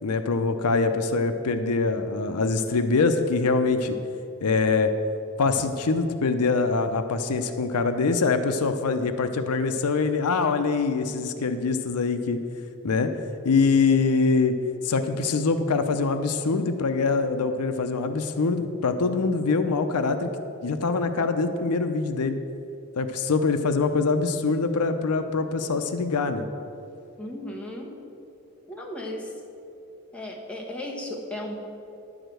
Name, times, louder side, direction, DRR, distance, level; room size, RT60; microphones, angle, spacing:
voice 1, 0.0-4.0 4.4-4.9 5.4-12.4 12.8-13.1 13.4-14.5 14.8-20.3 20.6-22.4 23.0-26.5, left 4 dB, 75° left, 8 dB, 0.6 m, -24 dB
voice 2, 27.2-27.9 28.7-29.3 30.1-31.5, left 1 dB, 5° left, -2 dB, 1.2 m, -35 dB
11.0 x 5.0 x 7.7 m, 2.8 s
head